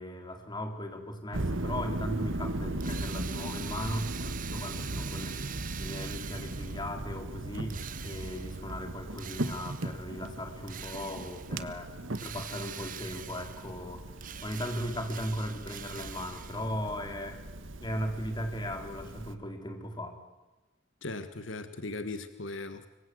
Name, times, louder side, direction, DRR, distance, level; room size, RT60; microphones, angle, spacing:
voice 1, 0.0-7.7 8.0-11.9 12.2-14.0 14.4-17.4 17.8-20.2, equal, 25° left, 5 dB, 4.0 m, -37 dB
sound 1, 1.3-19.4, right 1 dB, 80° right, 1.6 m, -38 dB
Drill, 2.8-6.9 7.7-8.7 9.2-10.0 10.7-11.6 12.1-13.8 14.2-16.8, right 10 dB, 45° right, 1.2 m, -44 dB
voice 2, 21.0-22.9, left 2 dB, 75° left, 10 dB, 1.6 m, -38 dB
25.5 x 23.5 x 7.9 m, 1.2 s
head